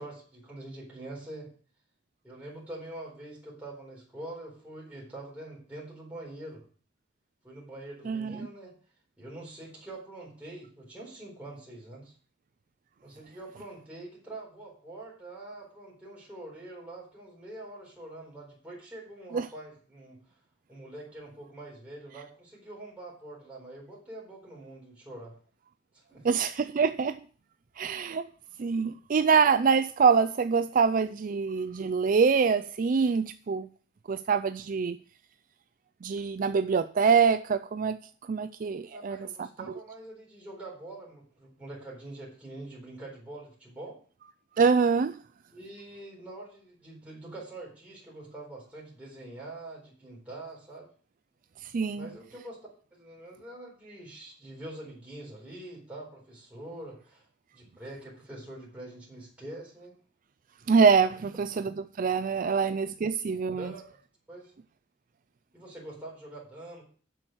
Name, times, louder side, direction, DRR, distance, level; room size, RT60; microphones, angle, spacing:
voice 1, 0.0-1.5 2.2-6.6 7.4-8.7 9.2-12.1 13.0-20.2 20.7-25.4 25.9-26.3 38.9-44.0 45.5-50.9 51.8-52.6 52.9-57.3 57.5-60.0 61.2-61.3 63.6-63.8 64.3-64.5 65.5-66.8, right 1 dB, 5° right, -4 dB, 4.1 m, -44 dB
voice 2, 8.1-8.4 19.3-19.4 26.2-27.2 27.8-28.3 28.6-33.7 34.1-35.0 36.0-38.0 38.3-39.2 44.6-45.2 51.7-52.1 60.7-63.7, right 5 dB, 45° right, 11 dB, 0.4 m, -25 dB
7.8 x 6.2 x 7.8 m, 0.43 s
head